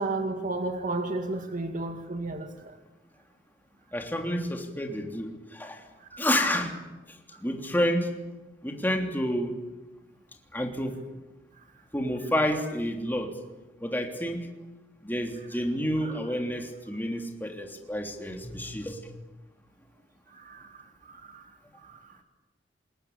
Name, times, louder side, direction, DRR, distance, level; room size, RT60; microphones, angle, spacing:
voice 1, 0.0-2.8 6.0-6.2 16.0-16.2 20.3-22.2, right 2 dB, 45° right, 5 dB, 2.1 m, -34 dB
voice 2, 3.9-5.8 6.2-6.8 7.1-8.1 8.6-9.5 10.5-10.9 11.9-13.3 13.8-14.5 15.0-19.1, equal, 10° left, 3 dB, 3.3 m, -29 dB
28.0 x 21.0 x 8.7 m, 1.1 s
head